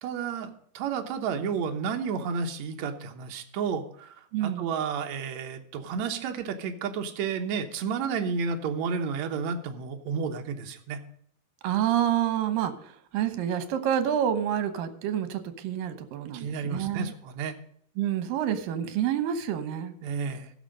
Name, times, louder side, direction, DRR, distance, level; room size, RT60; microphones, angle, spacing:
voice 1, 0.0-11.0 16.3-17.6 20.0-20.5, right 6 dB, 65° right, 4 dB, 2.1 m, -31 dB
voice 2, 4.3-4.7 11.6-17.1 18.0-19.9, right 10 dB, 80° right, 10 dB, 2.7 m, -28 dB
15.5 x 6.7 x 5.2 m, 0.64 s
omnidirectional pair, 4.0 m